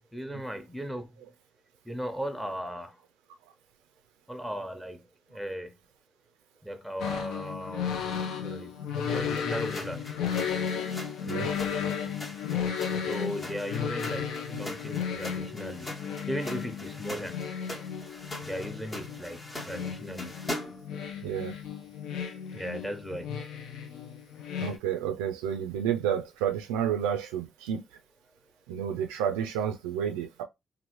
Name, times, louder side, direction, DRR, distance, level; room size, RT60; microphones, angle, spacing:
voice 1, 0.1-1.1 1.8-3.0 4.3-5.8 6.6-8.8 9.0-10.1 13.1-16.0 16.3-17.4 18.4-20.4 22.5-23.3, equal, ahead, 0.9 m, -37 dB
sound 1, 7.0-24.8, left 7 dB, 75° left, 0.5 m, -34 dB
sound 2, 9.6-20.9, left 1 dB, 30° left, 1.0 m, -42 dB
voice 2, 24.6-27.8 28.7-30.4, right 9 dB, 90° right, 0.3 m, -30 dB
2.9 x 2.5 x 3.0 m
hypercardioid pair, 50°, 0 cm